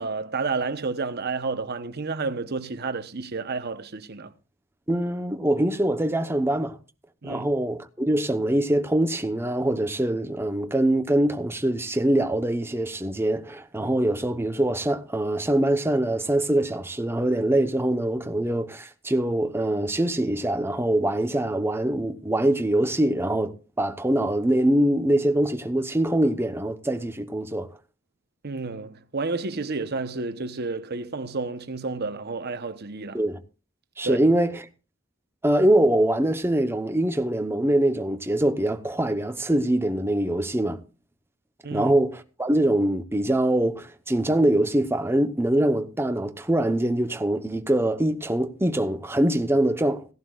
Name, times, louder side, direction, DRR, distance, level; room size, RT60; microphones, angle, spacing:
voice 1, 0.0-4.3 7.2-7.5 28.4-33.2 34.0-34.3 41.6-41.9, right 4 dB, 50° right, 0.9 m, -30 dB
voice 2, 4.9-6.8 7.2-27.7 33.1-33.4 34.0-34.6 35.4-40.8 41.7-50.1, right 1 dB, 10° right, 0.9 m, -23 dB
17.5 x 11.5 x 2.4 m
head